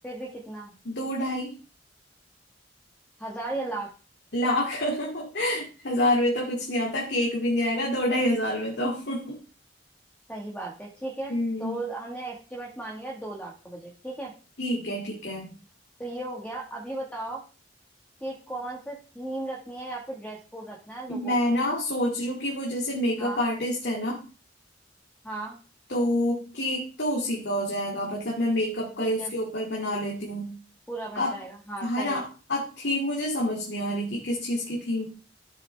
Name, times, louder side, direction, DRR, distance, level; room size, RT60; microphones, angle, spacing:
voice 1, 0.0-0.7 3.2-3.9 10.3-14.3 16.0-17.4 18.2-21.5 23.2-23.4 25.2-25.6 29.0-29.3 30.9-32.2, right 2 dB, 10° left, -2 dB, 1.6 m, -36 dB
voice 2, 0.8-1.5 4.3-9.4 11.3-11.8 14.6-15.5 21.1-24.2 25.9-30.5 31.2-31.3 31.8-35.1, left 1 dB, 65° left, -1 dB, 2.5 m, -27 dB
13.5 x 7.8 x 3.4 m, 0.35 s
head